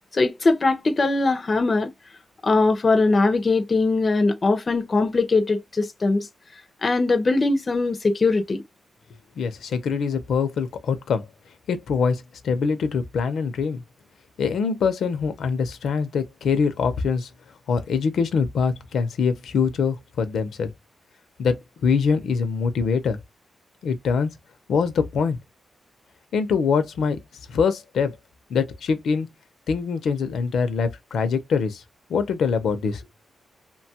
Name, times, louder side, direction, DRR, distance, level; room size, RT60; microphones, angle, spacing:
voice 1, 0.1-1.9 2.4-6.3 6.8-8.6, left 3 dB, 35° left, 0.5 m, -21 dB
voice 2, 9.4-11.2 11.7-13.8 14.4-17.3 17.7-20.7 21.4-23.2 23.8-24.3 24.7-25.4 26.3-27.2 27.5-28.2 28.5-29.3 29.7-31.8 32.1-33.0, left 5 dB, 80° left, 0.6 m, -24 dB
2.9 x 2.2 x 2.8 m
wide cardioid pair, 135°, 0 cm